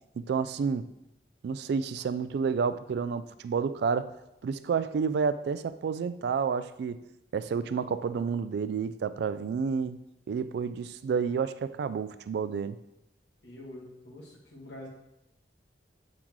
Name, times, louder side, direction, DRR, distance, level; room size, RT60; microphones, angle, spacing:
voice 1, 0.2-0.9 1.4-4.1 4.4-7.0 7.3-10.0 10.3-12.8, right 6 dB, 65° right, 14 dB, 0.3 m, -30 dB
voice 2, 13.4-14.9, left 1 dB, 80° left, -3 dB, 1.7 m, -45 dB
8.4 x 3.0 x 3.7 m, 0.87 s
head